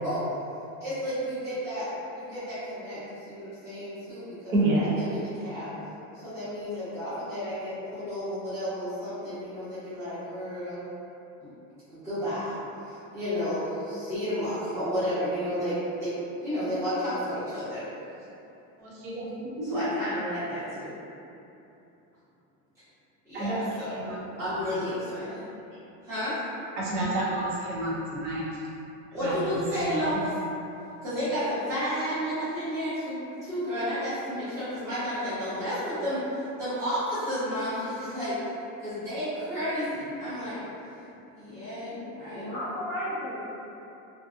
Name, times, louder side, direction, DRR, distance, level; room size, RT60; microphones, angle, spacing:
voice 1, 0.8-1.9 2.1-5.7 6.1-10.8 11.4-11.5 11.9-17.8 19.6-20.9 23.2-24.1 24.4-25.4 26.0-26.4 29.1-30.3 31.0-38.4 38.8-40.6 41.3-42.5, equal, 10° right, -18 dB, 1.1 m, -32 dB
voice 2, 4.5-5.0 18.8-19.8 23.3-23.6 23.9-24.2 24.5-24.7 26.8-28.6 29.2-30.2, right 1 dB, 30° right, -7 dB, 0.4 m, -29 dB
voice 3, 6.3-6.7 40.4-40.5 42.3-43.4, left 1 dB, 45° right, -13 dB, 1.1 m, -35 dB
2.5 x 2.5 x 2.4 m, 2.9 s
cardioid pair, 170°, 38 cm